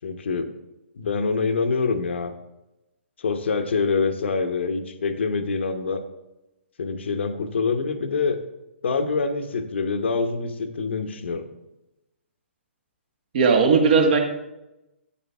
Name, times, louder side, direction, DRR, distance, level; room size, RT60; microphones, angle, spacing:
voice 1, 0.0-0.5 1.0-2.3 3.2-6.0 6.8-8.4 8.8-11.5, left 4 dB, 65° left, 8 dB, 1.0 m, -25 dB
voice 2, 13.3-14.2, right 5 dB, 50° right, 2 dB, 1.8 m, -17 dB
8.9 x 8.6 x 3.5 m, 0.95 s
figure-of-eight pair, 130°, 7 cm